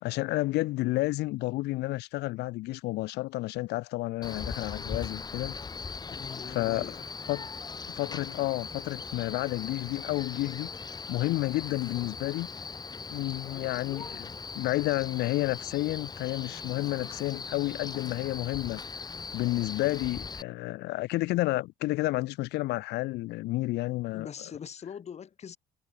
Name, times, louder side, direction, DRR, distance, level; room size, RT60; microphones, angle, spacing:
voice 1, 0.0-5.5 6.5-6.9 7.3-7.5 7.9-10.7 11.1-12.5 13.1-14.3 14.5-18.8 19.3-24.3, left 19 dB, 85° left, 1.1 m, -30 dB
Male speech man speaking, 4.2-20.4, left 5 dB, 25° left, 1.2 m, -40 dB
voice 2, 6.1-7.1 24.1-25.6, left 7 dB, 40° left, 2.1 m, -42 dB
cardioid pair, 110°, 17 cm